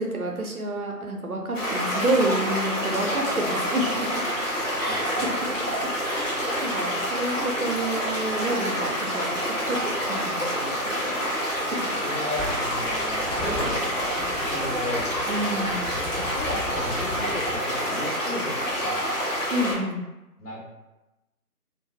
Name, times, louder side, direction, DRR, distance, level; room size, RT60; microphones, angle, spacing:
voice 1, 0.0-4.2 4.8-5.1 5.8-11.2 11.7-11.9 15.3-15.9 19.5-20.0, right 1 dB, 70° right, 1 dB, 0.7 m, -29 dB
sound 1, 1.5-19.7, equal, 55° left, 1.2 m, -28 dB
voice 2, 4.8-5.3 12.0-15.0 16.1-19.2 20.4-20.6, left 1 dB, 80° left, -4 dB, 1.3 m, -35 dB
sound 2, 12.4-17.6, left 1 dB, ahead, 0.4 m, -35 dB
3.8 x 2.0 x 2.3 m, 1.0 s
figure-of-eight pair, 175°, 46 cm